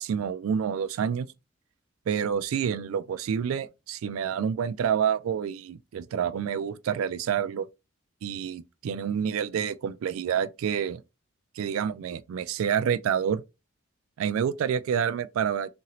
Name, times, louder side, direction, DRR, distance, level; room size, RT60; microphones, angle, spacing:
voice 1, 0.0-1.3 2.1-7.7 8.2-11.0 11.6-13.4 14.2-15.7, right 8 dB, 85° right, 0.3 m, -28 dB
2.8 x 2.7 x 2.9 m
head